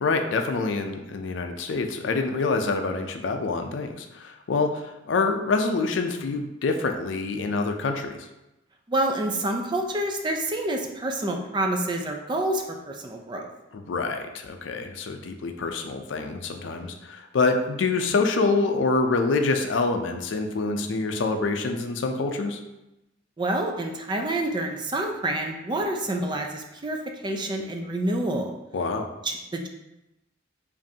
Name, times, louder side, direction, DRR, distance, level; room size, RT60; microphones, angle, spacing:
voice 1, 0.0-8.3 13.7-22.6 28.7-29.1, left 3 dB, 80° left, 6 dB, 0.4 m, -26 dB
voice 2, 8.9-13.5 23.4-27.0 27.2-28.5 29.2-29.7, right 1 dB, 25° right, 2 dB, 0.4 m, -28 dB
5.1 x 2.6 x 2.7 m, 0.96 s
head